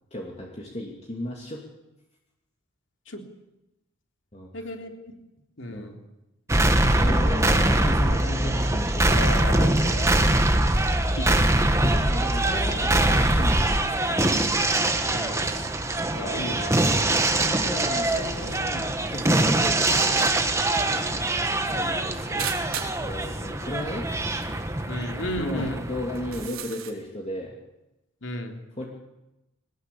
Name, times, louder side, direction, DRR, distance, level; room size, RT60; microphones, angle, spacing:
voice 1, 0.1-1.6 4.3-4.5 5.7-6.0 6.9-9.3 11.8-13.8 14.1-14.3 17.4-20.4 21.6-24.1 25.4-27.5 28.8-28.9, left 1 dB, 30° left, -1 dB, 2.7 m, -35 dB
voice 2, 4.5-5.1 5.6-5.9 9.0-10.1 11.2-11.5 15.1-15.5 16.1-17.2 24.9-25.8 28.2-28.6, left 1 dB, 60° left, 4 dB, 3.3 m, -34 dB
sound 1, 6.5-26.5, right 1 dB, 15° right, 1.5 m, -23 dB
sound 2, 22.4-23.0 24.1-24.2 24.4-24.5 25.0-25.1 26.1-26.9, right 8 dB, 90° right, 3.7 m, -34 dB
23.0 x 19.5 x 8.6 m, 0.95 s
head